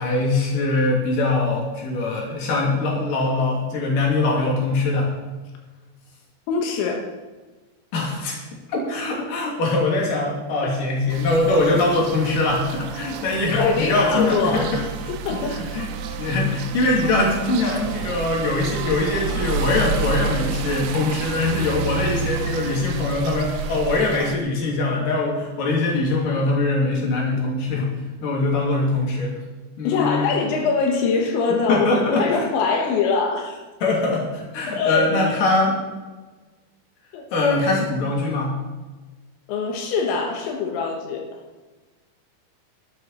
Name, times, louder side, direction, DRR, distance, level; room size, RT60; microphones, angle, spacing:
voice 1, 0.0-5.1 7.9-8.4 8.7-14.8 15.5-15.9 16.2-27.9 28.2-29.3 29.8-30.3 31.7-32.4 33.8-35.8 37.3-38.5, left 2 dB, 50° left, -2 dB, 4.2 m, -22 dB
voice 2, 6.5-7.1 13.5-15.6 27.8-27.9 29.9-33.6 34.7-35.1 37.1-37.3 39.5-41.4, left 4 dB, 90° left, 2 dB, 3.8 m, -23 dB
sound 1, 11.1-24.4, right 5 dB, 80° right, 3.0 m, -30 dB
13.0 x 12.0 x 4.2 m, 1.3 s
omnidirectional pair, 5.1 m